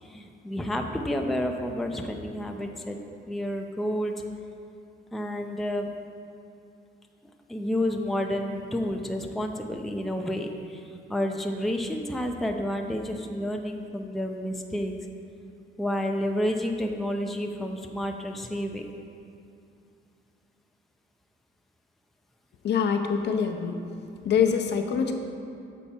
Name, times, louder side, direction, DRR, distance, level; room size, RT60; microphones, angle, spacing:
voice 1, 0.0-3.0 3.3-4.1 5.1-5.9 7.5-10.8 11.1-14.9 15.8-18.8, equal, ahead, 3 dB, 0.4 m, -30 dB
voice 2, 22.6-23.8 24.2-25.1, left 7 dB, 60° left, 4 dB, 0.6 m, -24 dB
7.2 x 4.4 x 4.3 m, 2.5 s
cardioid pair, 90°, 20 cm